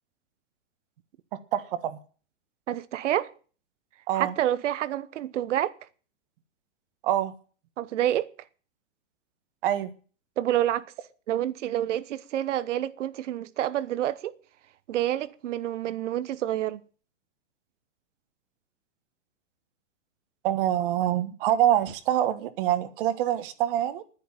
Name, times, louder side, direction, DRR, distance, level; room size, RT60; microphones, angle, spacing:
voice 1, 1.5-2.0 4.1-4.3 7.0-7.3 9.6-9.9 20.4-24.0, right 12 dB, 45° right, 1.6 m, -25 dB
voice 2, 2.7-3.3 4.1-5.7 7.8-8.3 10.4-10.9 11.3-14.4 14.9-16.8, right 12 dB, 70° right, 1.1 m, -28 dB
10.0 x 10.0 x 8.9 m
supercardioid pair, 160°, 37 cm